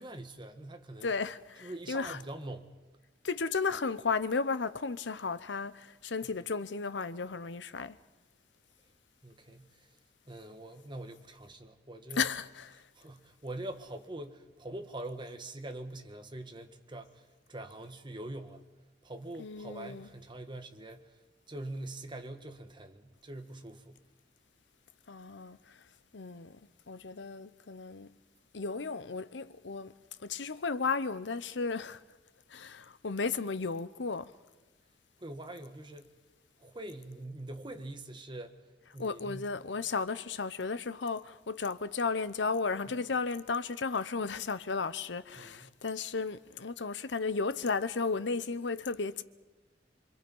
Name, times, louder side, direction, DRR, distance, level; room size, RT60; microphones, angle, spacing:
voice 1, 0.0-1.1 1.6-2.7 9.2-10.0 10.3-12.3 12.9-18.6 19.0-21.2 21.5-24.0 35.2-36.1 36.6-38.6 38.9-39.5 45.4-45.7, right 1 dB, 25° right, 1.5 m, -44 dB
voice 2, 1.0-2.2 3.2-8.0 12.2-12.8 19.4-20.1 25.1-25.8 26.1-26.6 26.9-28.1 28.5-29.9 30.2-32.0 32.5-34.3 39.0-49.2, left 4 dB, 75° left, 0.8 m, -34 dB
26.0 x 25.5 x 5.5 m
head